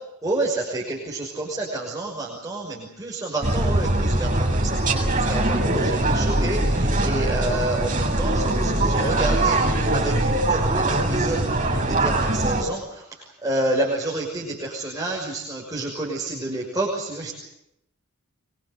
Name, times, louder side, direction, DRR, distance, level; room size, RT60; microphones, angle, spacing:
voice 1, 0.2-13.0 13.4-17.3, right 2 dB, 15° right, -2 dB, 6.1 m, -29 dB
sound 1, 3.4-12.6, right 1 dB, 35° right, 7.6 m, -22 dB
25.0 x 23.5 x 8.0 m, 0.81 s
head